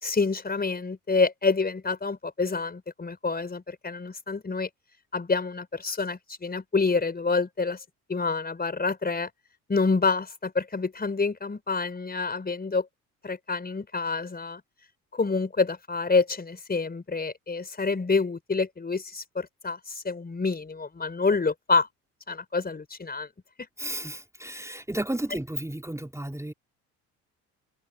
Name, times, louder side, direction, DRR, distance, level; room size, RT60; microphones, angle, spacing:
voice 1, 0.0-4.7 5.1-7.8 8.1-9.3 9.7-12.9 13.2-14.6 15.1-21.9 22.3-23.3, left 4 dB, 20° left, 4.6 m, -27 dB
voice 2, 23.8-26.5, right 1 dB, 5° right, 3.8 m, -33 dB
figure-of-eight pair, 55°, 44 cm